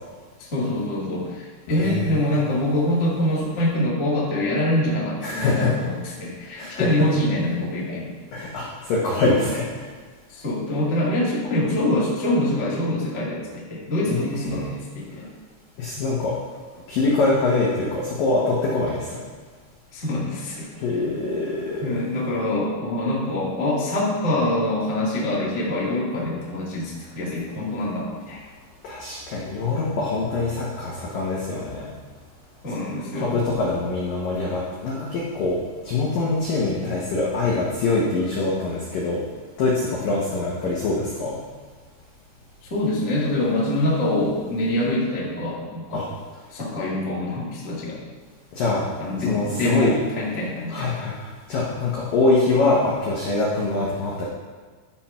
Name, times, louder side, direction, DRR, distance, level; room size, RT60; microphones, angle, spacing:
voice 1, 0.4-8.1 9.2-9.4 10.3-14.6 14.9-15.3 19.9-20.7 21.8-28.4 32.6-33.4 42.6-46.1 46.5-48.0 49.0-50.9, left 1 dB, 45° left, -7 dB, 0.9 m, -25 dB
voice 2, 1.8-2.4 5.2-5.9 6.6-7.1 8.3-9.6 14.1-14.7 15.8-16.3 16.9-19.2 20.8-22.0 28.8-31.8 33.1-35.6 35.9-39.2 39.6-41.4 45.9-46.1 48.5-48.8 49.2-50.0 50.7-54.2, left 3 dB, 75° left, -5 dB, 2.0 m, -24 dB
12.5 x 4.4 x 5.7 m, 1.5 s
omnidirectional pair, 6.0 m